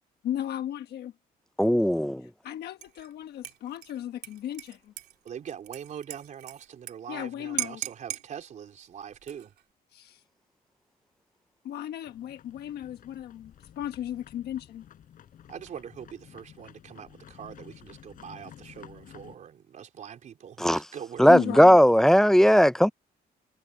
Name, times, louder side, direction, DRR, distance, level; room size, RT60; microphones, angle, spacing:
voice 1, 0.2-1.1 2.4-4.9 7.1-7.8 9.9-10.2 11.6-14.9 21.3-21.8, left 11 dB, 75° left, 1.3 m, -35 dB
voice 2, 1.6-2.2 20.6-20.8 21.2-22.9, equal, 5° left, 0.4 m, -18 dB
Dishes pots and pans / Liquid, 2.8-3.1 3.4-6.9 7.2-7.3 7.6-8.3 9.1-9.6, right 13 dB, 80° right, 2.9 m, -38 dB
voice 3, 5.2-9.5 15.5-21.6, right 8 dB, 50° right, 3.9 m, -43 dB
sound 1, 12.0-19.4, left 10 dB, 55° left, 6.1 m, -52 dB
cardioid pair, 155°, 17 cm